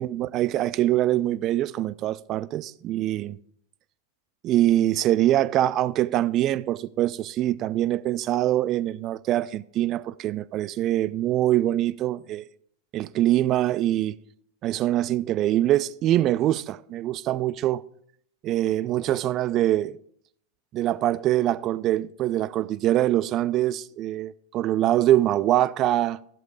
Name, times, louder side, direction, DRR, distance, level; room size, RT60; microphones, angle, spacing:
voice 1, 0.0-3.4 4.4-12.4 12.9-14.2 14.6-17.8 18.4-20.0 20.7-26.2, right 13 dB, 35° right, 0.4 m, -24 dB
11.5 x 8.2 x 4.8 m
figure-of-eight pair, 90°, 0 cm